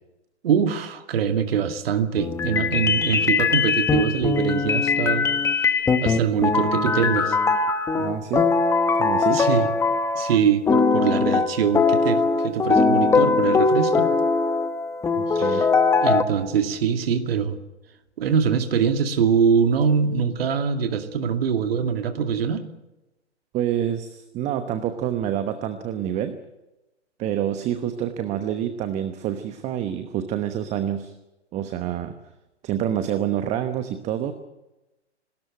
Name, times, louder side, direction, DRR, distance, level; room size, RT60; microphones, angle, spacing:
voice 1, 0.4-5.3 6.0-7.4 9.3-9.7 10.2-14.1 15.3-15.7 16.0-17.6 18.2-22.6, right 7 dB, 55° right, 7 dB, 2.4 m, -23 dB
sound 1, 2.2-10.4 10.7-16.2, left 4 dB, 10° left, 0.9 m, -21 dB
voice 2, 8.0-8.5 9.0-9.4 15.2-15.7 23.5-26.3 27.2-31.1 31.5-32.1 32.6-34.3, right 10 dB, 20° right, 10 dB, 1.0 m, -27 dB
28.5 x 13.0 x 9.0 m, 1.0 s
hypercardioid pair, 135°, 35 cm